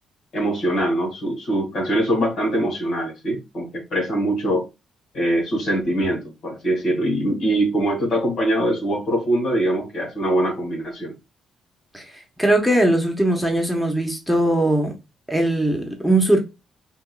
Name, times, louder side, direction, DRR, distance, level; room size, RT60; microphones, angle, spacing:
voice 1, 0.3-4.7 5.1-11.1, right 1 dB, 65° left, 2.3 m, -23 dB
voice 2, 12.4-14.9 15.3-16.4, right 1 dB, 5° left, 1.1 m, -19 dB
5.3 x 2.8 x 2.3 m
cardioid pair, 90°, 0 cm